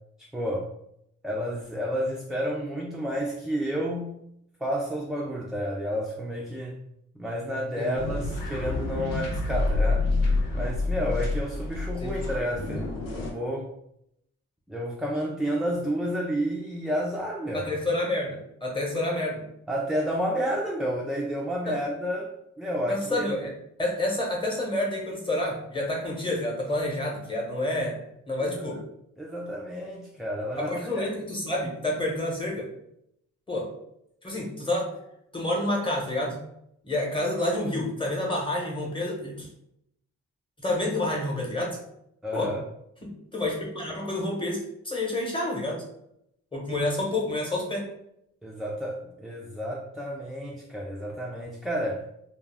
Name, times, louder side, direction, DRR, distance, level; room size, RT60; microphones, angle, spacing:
voice 1, 0.3-0.7 1.2-4.2 4.6-6.8 7.2-10.1 10.5-13.7 14.7-17.7 19.7-23.3 28.4-28.8 29.2-31.1 42.2-42.6 48.4-52.1, equal, ahead, -3 dB, 0.3 m, -31 dB
sound 1, 7.9-13.3, left 2 dB, 85° left, 0.7 m, -28 dB
voice 2, 17.5-19.4 21.7-21.8 22.9-23.5 23.8-28.0 28.3-28.8 30.6-32.7 33.5-33.7 34.2-34.9 35.3-36.4 36.8-39.5 40.6-41.8 42.3-42.5 43.0-45.8 46.5-47.9, left 1 dB, 15° left, -1 dB, 0.9 m, -29 dB
2.3 x 2.0 x 3.3 m, 0.77 s
cardioid pair, 85°, 32 cm